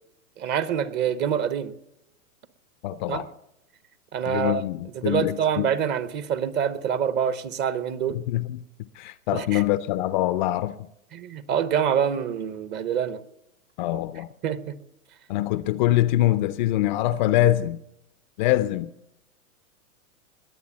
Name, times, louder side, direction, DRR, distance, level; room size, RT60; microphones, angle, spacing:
voice 1, 0.4-1.7 3.1-3.2 4.1-4.6 4.9-8.2 9.3-9.6 11.1-13.2 14.4-14.7, right 8 dB, 25° right, 0.8 m, -26 dB
voice 2, 2.8-3.3 4.3-5.7 8.3-8.6 9.0-10.9 13.8-14.3 15.3-17.8 18.4-18.9, left 14 dB, 35° left, 0.5 m, -24 dB
21.5 x 8.3 x 7.2 m
hypercardioid pair, 135°, 42 cm